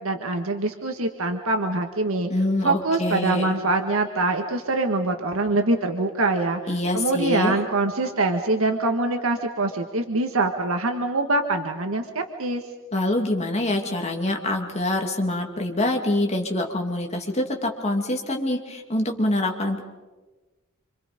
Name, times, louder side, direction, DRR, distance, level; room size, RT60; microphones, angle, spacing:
voice 1, 0.0-2.3 2.6-6.6 6.9-12.6, right 2 dB, 80° right, 4 dB, 1.7 m, -24 dB
voice 2, 2.3-3.6 6.7-7.6 12.9-19.8, left 1 dB, 30° left, 2 dB, 2.6 m, -25 dB
27.0 x 26.0 x 5.2 m, 1.2 s
head